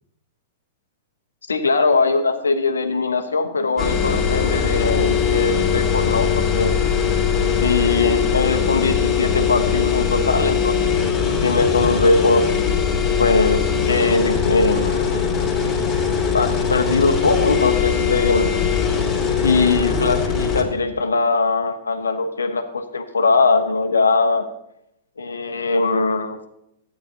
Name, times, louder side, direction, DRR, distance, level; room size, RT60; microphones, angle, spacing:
voice 1, 1.5-6.7 7.6-12.5 13.2-15.2 16.3-18.6 19.4-24.4 25.2-26.5, left 3 dB, 80° left, 6 dB, 1.0 m, -21 dB
sound 1, 3.8-20.6, left 6 dB, 20° left, 2.4 m, -20 dB
14.5 x 9.4 x 2.8 m, 0.82 s
figure-of-eight pair, 105°, 0 cm